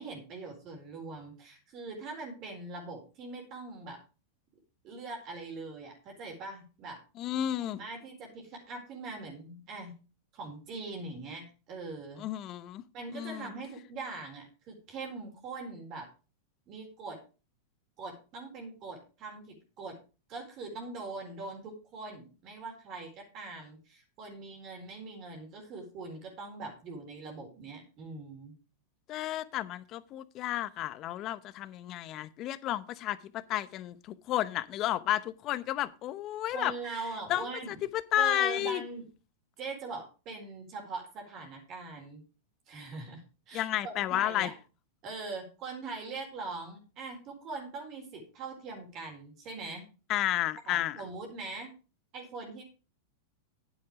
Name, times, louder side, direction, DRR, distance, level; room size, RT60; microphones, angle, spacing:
voice 1, 0.0-4.0 4.8-7.0 7.7-9.9 10.3-12.2 12.9-16.1 16.7-17.2 18.0-19.9 20.3-28.5 36.5-37.8 38.2-39.1 39.6-42.2 42.7-43.2 43.5-44.5 45.0-49.9 50.7-51.7 52.1-52.6, right 3 dB, 40° right, 4.2 m, -42 dB
voice 2, 7.2-7.8 12.2-12.8 13.1-13.5 29.1-36.7 37.3-38.8 43.5-44.5 50.1-51.0, left 13 dB, 40° left, 0.8 m, -32 dB
9.4 x 8.2 x 5.0 m
hypercardioid pair, 115°, 0 cm